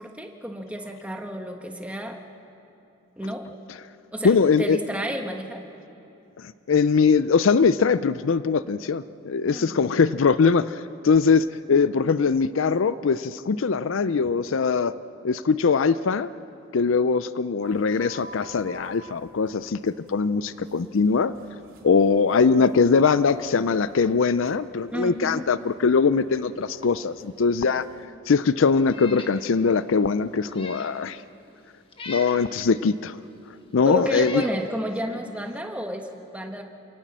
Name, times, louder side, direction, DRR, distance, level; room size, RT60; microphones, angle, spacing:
voice 1, 0.0-2.2 3.2-3.5 4.1-5.6 9.5-9.8 24.9-25.5 33.8-36.1 36.3-36.6, equal, 5° right, 3 dB, 1.4 m, -31 dB
voice 2, 4.2-4.8 6.7-14.9 15.2-16.3 16.7-21.3 21.8-27.9 28.3-31.2 32.1-33.2 33.7-34.4, left 5 dB, 65° left, 15 dB, 0.5 m, -21 dB
sound 1, 17.6-28.1, right 1 dB, 75° right, 3.1 m, -50 dB
Meow, 28.9-29.4 29.8-29.9 30.4-31.0 31.9-32.4 33.3-33.4 34.0-34.6, left 3 dB, 25° left, 1.3 m, -39 dB
28.0 x 18.0 x 7.5 m, 2.8 s
head